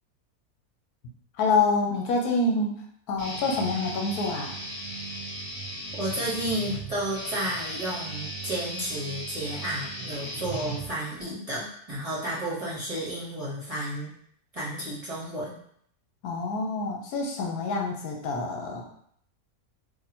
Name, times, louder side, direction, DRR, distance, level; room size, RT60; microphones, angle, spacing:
voice 1, 1.4-2.8 3.1-4.6 16.2-18.9, left 3 dB, 80° left, 1 dB, 1.2 m, -27 dB
Guitar, 3.2-11.2, right 1 dB, 35° left, 0.9 m, -37 dB
voice 2, 6.0-14.1 14.5-15.5, right 1 dB, 30° right, -8 dB, 0.9 m, -32 dB
2.8 x 2.5 x 4.2 m, 0.65 s
omnidirectional pair, 1.6 m